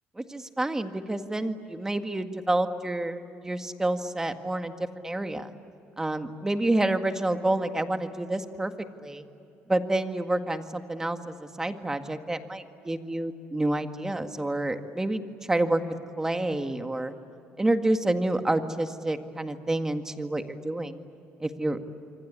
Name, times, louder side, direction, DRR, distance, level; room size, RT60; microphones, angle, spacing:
voice 1, 0.2-4.7 5.0-5.5 6.0-8.7 9.0-9.2 9.7-15.2 15.5-15.8 16.2-17.1 17.6-21.0 21.4-21.8, right 1 dB, 10° right, 7 dB, 1.8 m, -28 dB
27.0 x 24.5 x 8.5 m, 2.8 s
cardioid pair, 100°, 4 cm